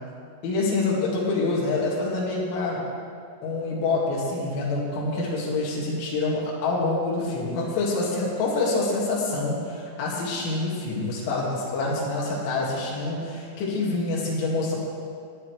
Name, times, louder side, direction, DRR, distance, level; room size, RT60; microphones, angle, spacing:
voice 1, 0.4-2.8 3.4-14.8, left 3 dB, 75° left, -5 dB, 4.5 m, -26 dB
18.0 x 10.5 x 3.2 m, 2.3 s
omnidirectional pair, 5.6 m